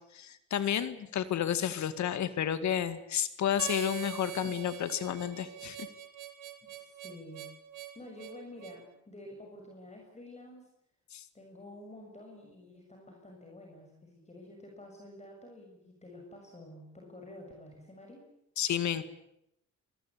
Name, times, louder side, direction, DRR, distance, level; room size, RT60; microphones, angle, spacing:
voice 1, 0.1-5.9 11.1-11.2 18.6-19.0, left 9 dB, 60° left, 13 dB, 2.1 m, -31 dB
Harmonica, 3.6-8.8, right 11 dB, 75° right, 3.3 m, -43 dB
voice 2, 6.6-7.5 7.9-10.7 11.3-18.3, left 1 dB, 20° left, 1 dB, 7.0 m, -50 dB
27.0 x 21.5 x 8.5 m, 0.80 s
cardioid pair, 85°, 32 cm